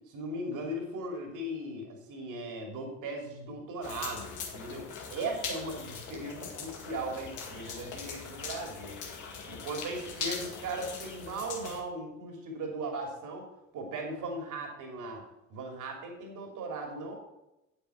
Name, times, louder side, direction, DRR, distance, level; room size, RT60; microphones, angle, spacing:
voice 1, 0.1-9.0 9.5-13.5 13.7-15.2 15.5-17.1, right 2 dB, 50° right, 2 dB, 2.8 m, -38 dB
sound 1, 3.8-11.8, left 5 dB, 50° left, 2.0 m, -41 dB
9.2 x 9.1 x 4.5 m, 0.90 s
figure-of-eight pair, 55°, 39 cm